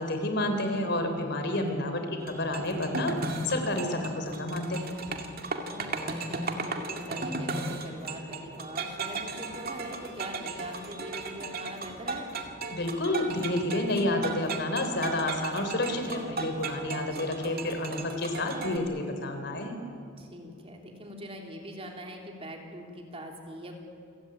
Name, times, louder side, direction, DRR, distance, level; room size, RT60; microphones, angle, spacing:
voice 1, 0.0-4.9 12.7-19.8, left 1 dB, 55° left, 6 dB, 3.7 m, -30 dB
sound 1, 2.2-18.8, right 3 dB, 50° right, 2.2 m, -36 dB
voice 2, 5.7-12.3 17.1-17.5 20.2-23.8, equal, 30° right, 1 dB, 3.2 m, -43 dB
28.0 x 17.0 x 9.0 m, 2.4 s
head